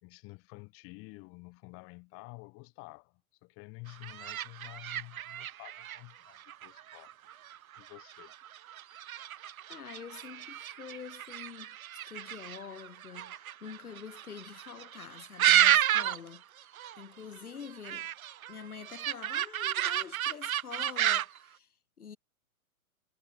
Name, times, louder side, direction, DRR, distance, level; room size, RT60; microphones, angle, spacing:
voice 1, 0.0-7.1 7.8-8.3, left 28 dB, 30° left, 2.2 m, -50 dB
sound 1, 3.9-16.4 16.6-17.0 17.4-21.4, right 11 dB, 70° right, 0.6 m, -31 dB
voice 2, 9.7-16.4 16.7-18.1 18.5-22.2, left 7 dB, 80° left, 1.6 m, -46 dB
figure-of-eight pair, 120°, 44 cm